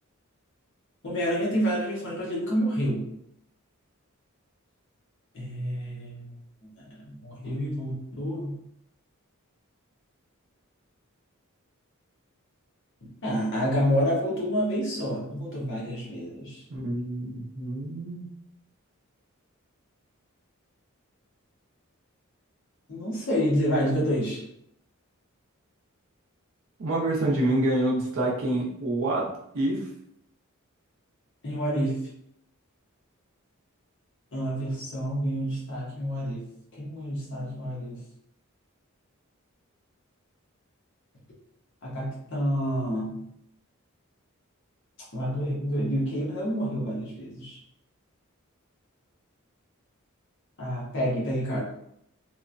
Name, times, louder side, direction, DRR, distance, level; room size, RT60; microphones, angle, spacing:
voice 1, 1.0-3.1 5.3-6.3 6.8-8.5 13.2-16.6 22.9-24.4 31.4-32.0 34.3-36.4 36.8-38.0 41.8-43.2 45.1-47.6 50.6-51.6, equal, 60° left, -4 dB, 0.8 m, -28 dB
voice 2, 16.7-18.3 26.8-29.3 29.5-29.9, right 1 dB, 65° right, -4 dB, 0.6 m, -27 dB
3.0 x 2.1 x 2.5 m, 0.74 s
head